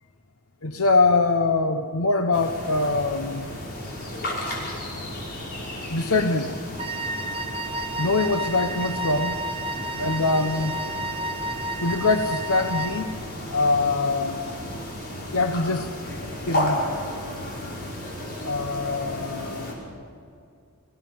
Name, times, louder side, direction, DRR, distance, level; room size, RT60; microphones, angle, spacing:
voice 1, 0.6-3.5 5.9-6.5 8.0-9.4 10.0-10.7 11.8-13.1 13.5-14.4 15.3-15.9 16.5-16.8 18.4-19.8, left 3 dB, 85° left, 6 dB, 1.0 m, -23 dB
sound 1, 2.3-19.7, left 1 dB, 50° left, 6.2 m, -33 dB
Wind instrument woodwind instrument, 6.8-13.1, right 1 dB, 25° right, 1.0 m, -31 dB
24.5 x 17.0 x 7.7 m, 2.3 s
head